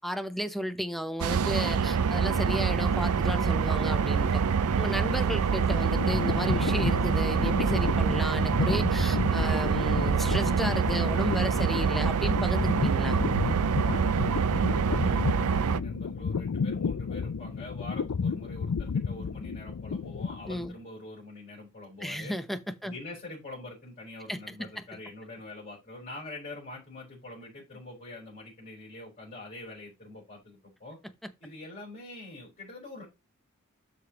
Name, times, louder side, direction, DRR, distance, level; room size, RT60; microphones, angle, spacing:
voice 1, 0.0-4.4 4.8-13.2 20.5-20.7 22.0-22.9 24.3-24.8, equal, ahead, 0.8 m, -34 dB
sound 1, 1.2-15.8, right 6 dB, 85° right, 0.5 m, -26 dB
sound 2, 5.5-20.8, left 5 dB, 90° left, 0.5 m, -32 dB
voice 2, 13.9-22.3 22.8-31.0 31.4-33.0, left 2 dB, 40° left, 4.7 m, -45 dB
12.0 x 5.1 x 3.0 m
head